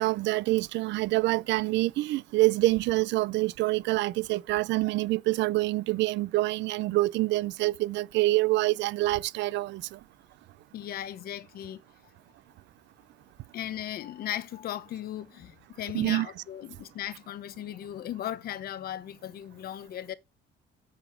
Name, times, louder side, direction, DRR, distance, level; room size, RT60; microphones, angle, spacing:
voice 1, 0.0-10.0 15.9-16.3, right 19 dB, 80° right, 0.5 m, -26 dB
voice 2, 10.7-11.8 13.5-20.1, left 11 dB, 55° left, 1.0 m, -37 dB
8.2 x 7.0 x 4.8 m
cardioid pair, 155°, 18 cm